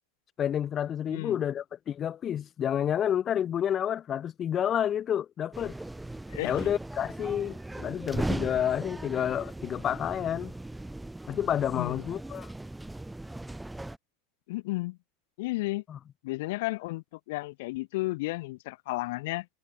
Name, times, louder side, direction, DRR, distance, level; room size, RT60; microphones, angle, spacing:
voice 1, 0.4-5.7 6.4-10.5 11.3-12.5 15.9-16.0, left 9 dB, 30° left, 1.4 m, -29 dB
voice 2, 1.1-1.4 6.3-6.7 11.7-12.1 14.5-15.0 15.4-15.8 16.2-19.5, left 21 dB, 65° left, 4.5 m, -33 dB
sound 1, 5.5-14.0, right 2 dB, 5° right, 7.8 m, -38 dB
hypercardioid pair, 115°, 0 cm